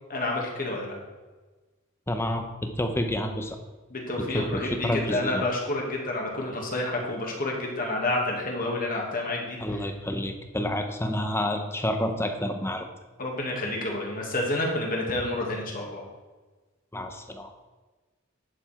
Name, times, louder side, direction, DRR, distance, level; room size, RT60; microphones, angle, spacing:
voice 1, 0.1-1.0 3.9-9.6 13.2-16.0, left 2 dB, 45° left, -1 dB, 2.2 m, -29 dB
voice 2, 2.1-3.6 4.2-5.4 9.6-12.8 16.9-17.5, left 1 dB, 10° left, 6 dB, 0.9 m, -29 dB
11.0 x 7.1 x 4.5 m, 1.2 s
head